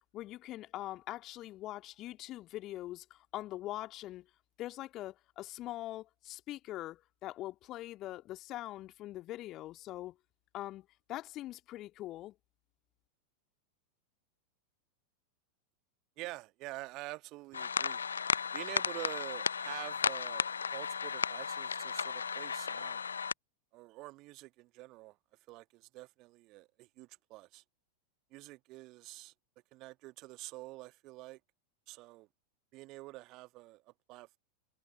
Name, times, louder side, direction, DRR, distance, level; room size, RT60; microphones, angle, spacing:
voice 1, 0.1-4.3 4.6-10.2 10.5-12.3, left 15 dB, 35° left, 2.2 m, -43 dB
voice 2, 16.2-18.0 18.5-20.4 20.7-23.0 23.7-25.2 25.5-27.6 28.3-29.3 29.7-31.4 31.9-32.3 32.7-33.8 34.1-34.4, right 20 dB, 40° right, 1.3 m, -47 dB
sound 1, 17.5-23.3, left 6 dB, 70° left, 0.5 m, -34 dB
figure-of-eight pair, 90°, 0 cm